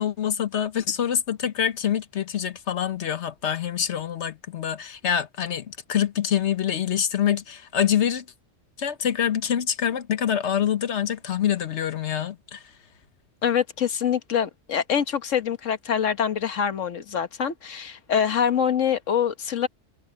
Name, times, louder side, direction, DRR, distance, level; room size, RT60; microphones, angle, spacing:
voice 1, 0.0-8.2 8.8-12.6, left 9 dB, 65° left, 1.3 m, -25 dB
voice 2, 13.4-19.7, left 8 dB, 90° left, 1.6 m, -25 dB
omnidirectional pair, 1.3 m